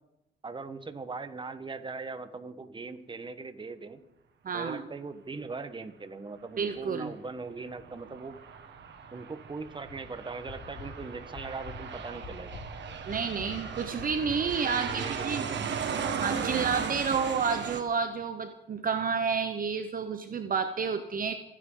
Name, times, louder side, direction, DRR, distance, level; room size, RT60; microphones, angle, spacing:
voice 1, 0.4-4.0 4.5-8.4 9.1-12.6 14.6-15.8, right 4 dB, 25° right, 10 dB, 1.3 m, -40 dB
voice 2, 4.4-4.8 6.6-7.1 13.1-15.5 16.2-21.3, right 6 dB, 45° right, 8 dB, 1.0 m, -30 dB
sound 1, 6.7-15.0, left 3 dB, 60° left, 3.1 m, -48 dB
Aircraft, 7.6-17.8, right 6 dB, 65° right, 1.8 m, -36 dB
30.0 x 10.0 x 3.9 m, 0.89 s
cardioid pair, 90°, 20 cm